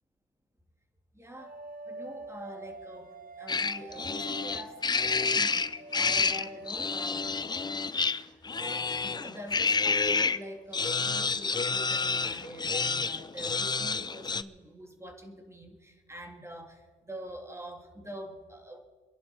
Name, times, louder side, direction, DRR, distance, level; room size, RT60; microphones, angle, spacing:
voice 1, 1.1-1.6 1.8-7.3 7.8-7.9 8.2-18.8, equal, 15° right, 3 dB, 3.0 m, -45 dB
sound 1, 1.4-6.7, right 3 dB, 45° right, 1.2 m, -45 dB
sound 2, 3.5-10.4 10.7-14.4, left 4 dB, 20° left, 0.5 m, -29 dB
27.0 x 11.0 x 4.6 m, 1.5 s
cardioid pair, 90°, 20 cm